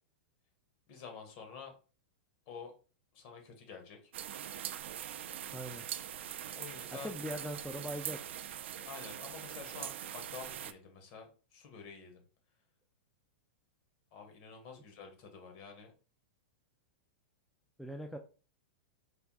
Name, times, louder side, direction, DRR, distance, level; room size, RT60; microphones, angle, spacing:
voice 1, 0.9-1.7 2.5-2.7 3.1-4.1 6.5-7.1 8.8-12.2 14.1-15.9, left 6 dB, 45° left, 4 dB, 1.5 m, -49 dB
sound 1, 4.1-10.7, right 10 dB, 75° right, 0.4 m, -42 dB
voice 2, 5.5-5.8 7.0-8.2 17.8-18.2, equal, ahead, 3 dB, 0.3 m, -40 dB
4.5 x 3.5 x 2.4 m, 0.35 s
supercardioid pair, 145°, 6 cm